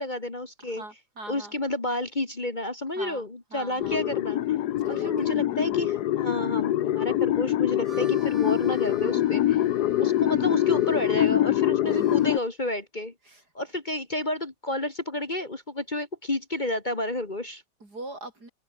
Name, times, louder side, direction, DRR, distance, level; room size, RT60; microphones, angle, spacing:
voice 1, 0.0-0.8 1.3-4.6 4.9-9.6 10.0-13.1 13.5-17.6, left 1 dB, 25° left, 2.1 m, -31 dB
voice 2, 0.6-1.6 3.0-4.0 4.8-5.4 9.9-10.1 13.3-13.4 17.8-18.5, right 2 dB, 65° right, 7.4 m, -43 dB
sound 1, 3.8-12.4, left 13 dB, 75° left, 1.3 m, -24 dB
Harmonica, 7.6-12.5, right 3 dB, 40° right, 3.9 m, -50 dB
omnidirectional pair, 1.8 m